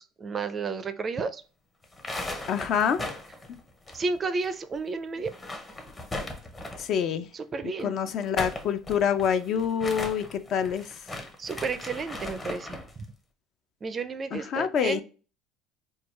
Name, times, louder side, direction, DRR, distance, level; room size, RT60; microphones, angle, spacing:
voice 1, 0.0-1.4 3.9-5.3 7.3-8.0 11.4-13.1 13.8-15.0, right 4 dB, 25° right, 12 dB, 0.4 m, -32 dB
sound 1, 1.8-4.5 4.7-4.8 5.2-7.0 8.1-12.9, left 1 dB, 20° left, 0.7 m, -37 dB
voice 2, 2.5-3.0 3.5-3.6 6.8-7.3 7.8-10.9 14.3-15.0, left 7 dB, 50° left, 11 dB, 0.4 m, -26 dB
4.5 x 2.3 x 3.1 m, 0.36 s
cardioid pair, 130°, 0 cm